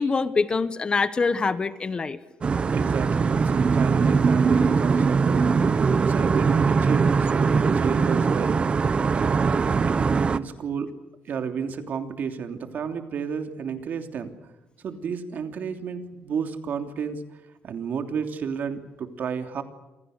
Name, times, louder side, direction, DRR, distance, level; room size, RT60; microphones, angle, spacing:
voice 1, 0.0-2.2, left 4 dB, 25° left, 13 dB, 1.1 m, -24 dB
sound 1, 2.4-10.4, right 5 dB, 30° right, 0.9 m, -21 dB
voice 2, 2.7-5.5 6.1-8.6 9.2-9.6 9.9-10.0 10.3-10.9 11.2-14.3 14.8-17.2 17.6-19.6, right 6 dB, 50° right, 6 dB, 3.1 m, -31 dB
28.5 x 28.0 x 6.7 m, 0.98 s
cardioid pair, 155°, 4 cm